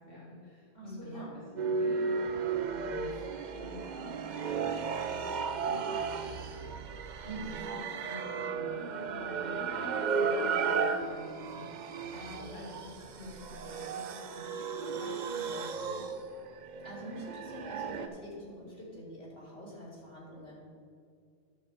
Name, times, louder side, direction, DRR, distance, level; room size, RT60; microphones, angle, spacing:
voice 1, 0.0-1.4 1.8-7.8 8.1-16.1, left 1 dB, 60° left, -6 dB, 2.5 m, -48 dB
voice 2, 0.7-1.4 7.2-7.6 12.1-12.7 16.8-20.7, right 1 dB, 75° left, -7 dB, 2.9 m, -45 dB
sound 1, 1.6-18.1, right 5 dB, 55° right, 0.6 m, -34 dB
11.5 x 6.6 x 4.4 m, 2.3 s
omnidirectional pair, 1.1 m